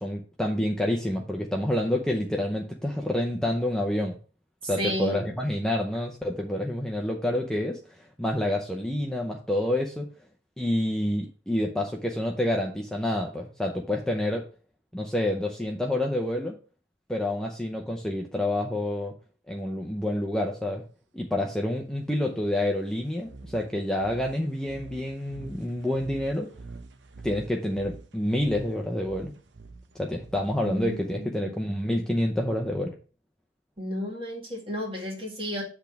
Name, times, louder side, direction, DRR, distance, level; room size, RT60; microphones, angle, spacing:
voice 1, 0.0-4.2 4.6-10.1 10.6-14.4 14.9-16.5 17.1-19.1 19.5-20.8 21.1-26.5 27.2-29.3 29.9-32.9, left 1 dB, 5° left, 0 dB, 0.6 m, -28 dB
voice 2, 4.6-5.3 30.6-31.6 33.8-35.6, equal, 30° right, -1 dB, 1.9 m, -32 dB
sound 1, 23.2-31.2, right 3 dB, 80° right, 0.7 m, -46 dB
8.2 x 3.5 x 5.9 m, 0.39 s
head